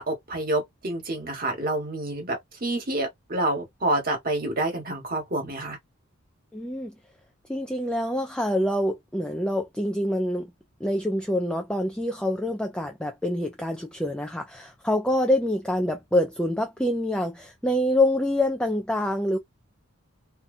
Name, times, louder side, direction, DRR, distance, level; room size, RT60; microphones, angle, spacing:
voice 1, 0.0-5.8, right 2 dB, 45° right, 1.3 m, -28 dB
voice 2, 6.5-6.9 7.5-10.5 10.8-19.4, left 1 dB, 5° left, 0.4 m, -26 dB
2.7 x 2.3 x 2.5 m
head